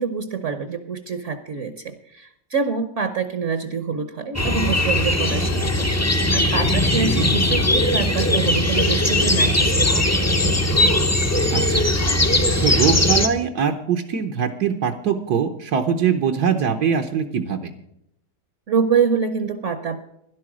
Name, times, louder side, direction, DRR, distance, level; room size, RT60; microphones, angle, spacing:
voice 1, 0.0-10.1 18.7-20.0, right 6 dB, 55° right, 10 dB, 1.1 m, -25 dB
sound 1, 4.3-13.3, left 1 dB, 15° left, 0.5 m, -19 dB
voice 2, 11.5-11.9 12.6-17.7, right 7 dB, 75° right, 5 dB, 1.4 m, -22 dB
12.5 x 11.5 x 6.1 m, 0.77 s
omnidirectional pair, 1.8 m